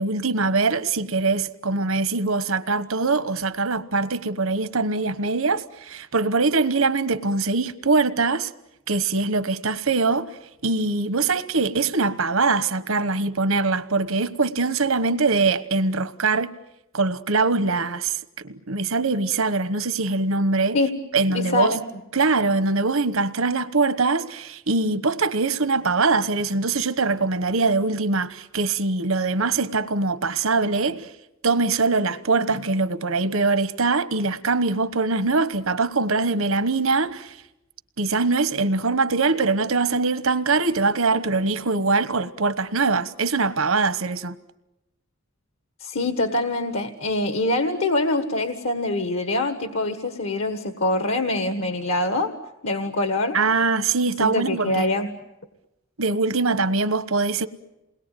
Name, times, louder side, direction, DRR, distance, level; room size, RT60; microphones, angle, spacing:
voice 1, 0.0-8.5 8.9-16.6 16.9-20.8 21.1-21.8 22.1-31.1 31.4-37.4 38.0-44.3 53.3-54.8 56.0-57.5, right 3 dB, 80° right, 1.2 m, -23 dB
voice 2, 21.3-21.8 45.8-52.3 52.6-53.4 54.2-55.1, left 2 dB, 70° left, 1.6 m, -24 dB
28.5 x 21.0 x 9.2 m
head